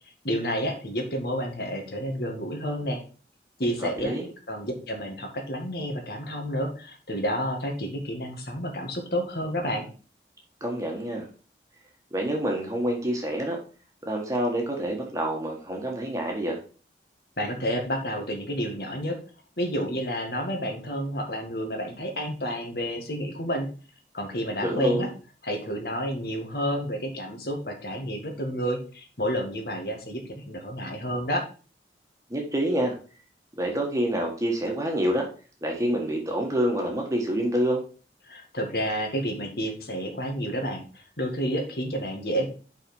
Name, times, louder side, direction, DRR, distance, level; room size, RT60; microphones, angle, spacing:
voice 1, 0.2-3.0 3.6-4.2 4.5-9.9 17.4-19.2 19.6-23.7 24.1-25.1 25.4-31.4 38.2-42.5, equal, 60° left, 3 dB, 1.9 m, -30 dB
voice 2, 3.8-4.3 10.6-11.2 12.1-13.6 14.0-16.6 24.6-25.1 32.3-32.9 33.6-35.3 35.6-37.8, right 1 dB, 20° right, 0 dB, 1.4 m, -27 dB
5.8 x 4.9 x 5.3 m, 0.37 s
head